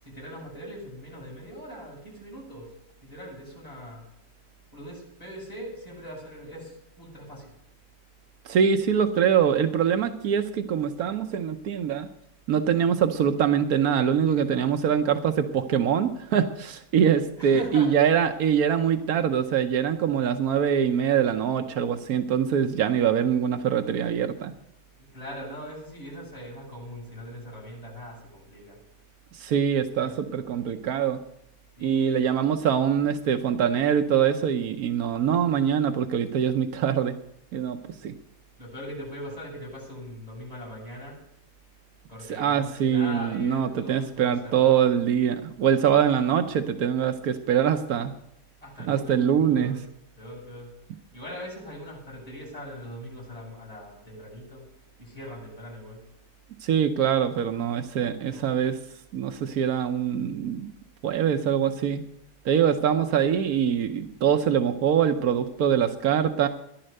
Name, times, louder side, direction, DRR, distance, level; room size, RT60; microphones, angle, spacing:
voice 1, 0.0-2.7 3.0-4.0 4.7-7.5 17.4-17.9 25.1-28.8 30.0-30.2 31.8-32.5 38.6-41.2 42.1-45.0 48.6-49.8 50.2-50.7 51.1-54.7 55.0-56.0 58.2-58.5, equal, 25° left, -5 dB, 7.4 m, -41 dB
voice 2, 8.4-12.1 12.5-24.5 29.3-31.2 31.8-37.1 37.5-38.1 42.3-48.1 48.8-49.8 56.6-58.8 59.1-60.7 61.0-62.0 62.4-66.5, right 8 dB, 90° right, 7 dB, 1.3 m, -24 dB
14.5 x 11.0 x 6.5 m, 0.74 s
omnidirectional pair, 1.5 m